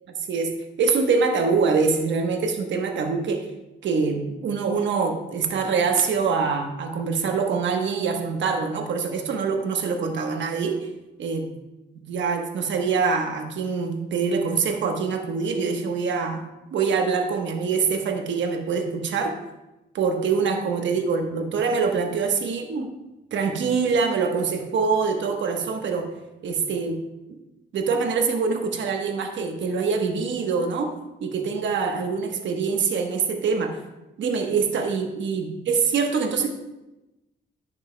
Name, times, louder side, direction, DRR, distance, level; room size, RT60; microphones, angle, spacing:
voice 1, 0.1-0.5 0.8-3.5 3.8-10.9 11.2-11.5 12.0-19.4 19.9-22.9 23.3-26.1 26.4-27.0 27.7-30.9 31.2-33.8 34.2-36.5, right 5 dB, 80° right, 4 dB, 1.1 m, -24 dB
11.0 x 8.9 x 2.2 m, 0.99 s
cardioid pair, 85°, 19 cm